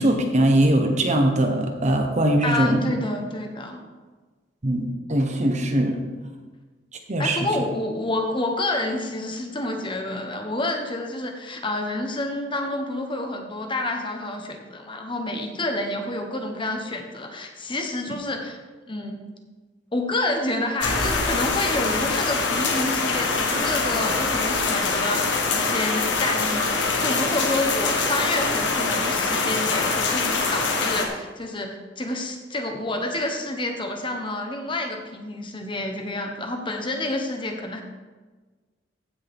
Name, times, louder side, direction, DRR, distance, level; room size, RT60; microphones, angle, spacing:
voice 1, 0.0-2.8 4.6-6.0 7.1-7.5, right 1 dB, 40° right, 4 dB, 1.2 m, -21 dB
voice 2, 2.4-3.8 7.2-18.6 18.9-19.2 19.9-37.8, left 2 dB, 25° left, 4 dB, 1.1 m, -29 dB
sound 1, 20.8-31.1, left 4 dB, 75° left, 1.4 m, -24 dB
15.5 x 6.5 x 3.6 m, 1.3 s
head